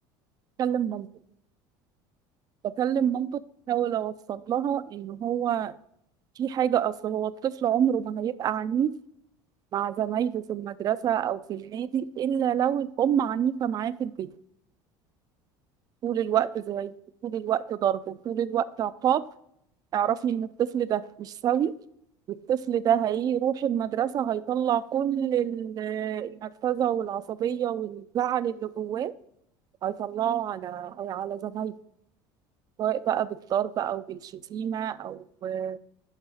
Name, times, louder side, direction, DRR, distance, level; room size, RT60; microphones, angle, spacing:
voice 1, 0.6-1.1 2.6-3.3 3.7-5.7 6.4-8.9 9.7-14.3 16.0-16.9 17.2-19.2 19.9-21.7 22.3-29.1 29.8-31.7 32.8-35.8, right 9 dB, 40° right, 16 dB, 0.4 m, -27 dB
6.5 x 5.6 x 4.8 m, 0.74 s
supercardioid pair, 105°, 10 cm